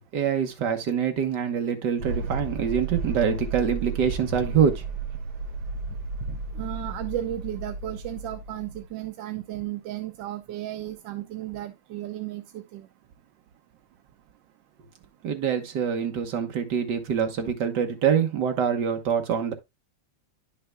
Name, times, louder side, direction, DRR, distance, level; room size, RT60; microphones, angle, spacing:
voice 1, 0.1-4.8 15.2-19.5, right 7 dB, 55° right, 1.7 m, -25 dB
sound 1, 2.0-8.9, right 3 dB, 90° right, 2.1 m, -33 dB
voice 2, 6.3-12.9, right 13 dB, 75° right, 1.2 m, -34 dB
10.0 x 6.7 x 2.2 m
omnidirectional pair, 2.3 m